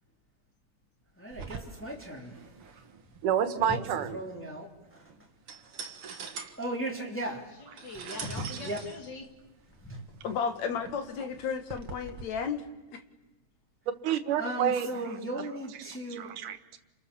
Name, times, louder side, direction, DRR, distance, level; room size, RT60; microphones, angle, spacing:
voice 1, 1.2-2.4 3.6-5.0 6.6-7.5 8.6-8.8 9.8-10.0 14.4-16.3, right 1 dB, 5° left, 0 dB, 3.1 m, -36 dB
sound 1, 1.3-12.2, right 5 dB, 50° right, 2.3 m, -45 dB
voice 2, 3.2-4.2 8.0-8.1 14.0-15.8 16.1-16.8, right 9 dB, 85° right, 10 dB, 2.8 m, -30 dB
voice 3, 7.3-9.3, left 3 dB, 35° left, 3 dB, 3.4 m, -44 dB
voice 4, 10.2-13.0, left 6 dB, 65° left, 7 dB, 3.1 m, -33 dB
29.0 x 28.5 x 7.1 m, 1.0 s
omnidirectional pair, 3.5 m